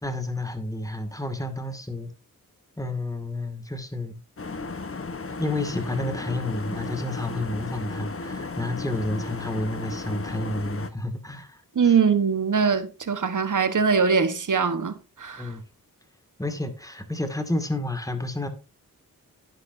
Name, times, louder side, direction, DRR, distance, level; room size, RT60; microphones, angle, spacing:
voice 1, 0.0-2.1 2.8-4.2 5.4-12.0 15.4-15.6 16.4-18.5, left 2 dB, 10° left, 2.1 m, -30 dB
sound 1, 4.4-10.9, left 3 dB, 40° left, 1.1 m, -35 dB
voice 2, 11.7-15.5, right 6 dB, 60° right, 1.3 m, -22 dB
10.5 x 10.0 x 2.7 m
cardioid pair, 45°, 35 cm